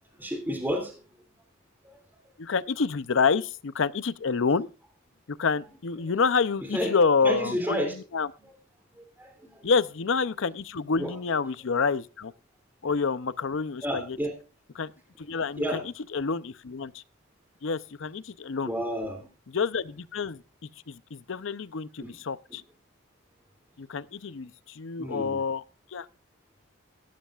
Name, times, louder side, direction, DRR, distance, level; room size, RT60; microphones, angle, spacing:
voice 1, 0.1-1.0 1.8-2.0 6.0-6.1 6.6-7.0 7.2-8.0 8.4-8.5 8.9-9.7 11.0-11.2 13.8-14.3 15.6-15.8 18.6-19.3 22.0-22.2 25.0-25.4, equal, 10° right, 2.8 m, -31 dB
voice 2, 2.4-4.7 5.3-7.8 8.1-8.3 9.6-12.3 12.8-14.0 14.8-14.9 15.2-15.6 16.1-17.0 17.6-18.7 19.5-20.4 20.9-22.6 23.8-25.6 25.9-26.1, left 5 dB, 65° left, 0.6 m, -27 dB
17.0 x 13.0 x 2.4 m
head